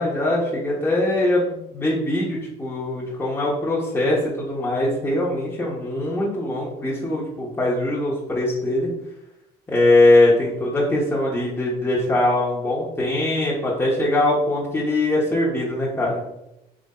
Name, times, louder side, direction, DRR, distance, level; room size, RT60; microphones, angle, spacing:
voice 1, 0.0-8.9 9.7-16.2, left 1 dB, 15° left, -7 dB, 1.1 m, -21 dB
3.8 x 3.2 x 4.2 m, 0.90 s
cardioid pair, 110°, 17 cm